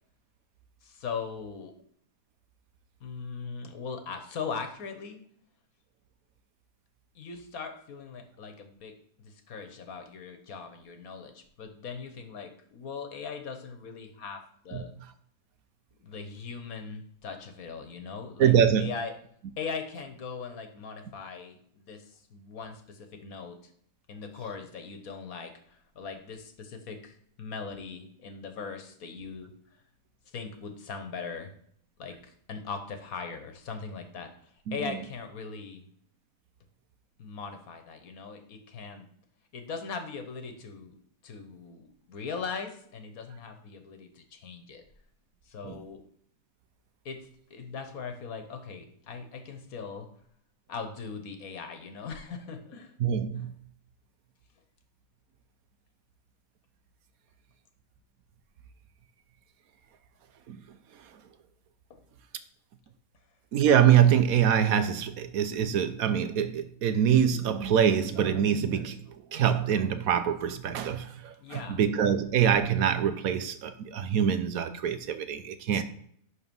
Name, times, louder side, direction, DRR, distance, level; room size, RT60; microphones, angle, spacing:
voice 1, 0.8-1.7 3.0-5.2 7.1-14.9 16.0-19.1 19.6-23.5 24.1-29.5 30.3-31.5 32.0-35.9 37.2-39.0 39.5-41.0 41.2-44.8 45.4-46.0 47.0-50.1 50.7-52.9 61.9-62.0 71.4-71.8, left 5 dB, 75° left, 7 dB, 1.6 m, -40 dB
voice 2, 18.4-18.9 34.7-34.8 45.6-45.7 53.0-53.5 60.5-60.6 63.5-69.0 69.3-75.8, right 9 dB, 75° right, 11 dB, 1.2 m, -24 dB
11.5 x 4.0 x 5.4 m, 0.65 s
omnidirectional pair, 1.5 m